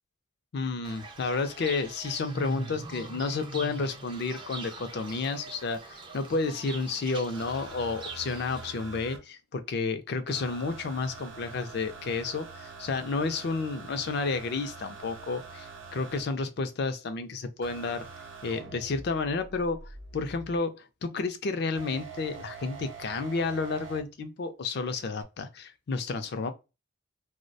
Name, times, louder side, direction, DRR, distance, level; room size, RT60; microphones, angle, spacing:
voice 1, 0.5-18.1 18.4-26.5, left 4 dB, 55° left, 0.4 m, -31 dB
Fowl / Bird, 0.8-8.7, right 2 dB, 25° right, 0.4 m, -42 dB
sound 1, 7.3-9.2 10.3-16.2 17.6-20.6 21.8-24.0 25.2-25.3, right 4 dB, 70° right, 0.6 m, -45 dB
2.3 x 2.1 x 2.6 m
head